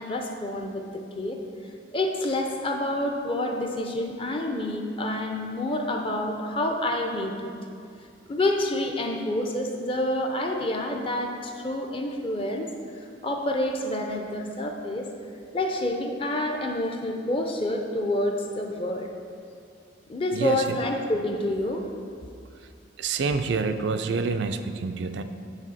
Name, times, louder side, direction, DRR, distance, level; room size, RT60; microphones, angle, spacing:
voice 1, 0.0-1.4 1.9-7.5 8.3-12.7 13.2-15.1 15.5-19.1 20.1-21.9, left 1 dB, 25° left, 3 dB, 0.5 m, -28 dB
voice 2, 20.3-20.8 23.0-25.2, right 4 dB, 60° right, 8 dB, 0.3 m, -27 dB
8.9 x 4.4 x 4.1 m, 2.4 s
head